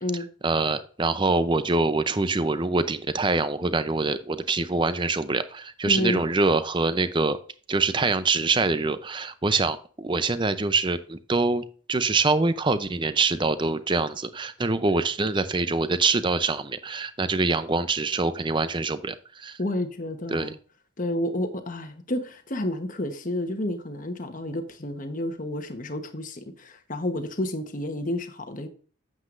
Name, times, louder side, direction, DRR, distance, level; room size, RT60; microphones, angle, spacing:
voice 1, 0.1-7.4 7.7-19.6 20.3-20.6, right 3 dB, 25° right, 13 dB, 0.5 m, -25 dB
voice 2, 5.9-6.2 19.6-20.5 21.0-28.7, left 1 dB, 40° left, 7 dB, 1.1 m, -30 dB
9.1 x 7.7 x 2.5 m, 0.42 s
head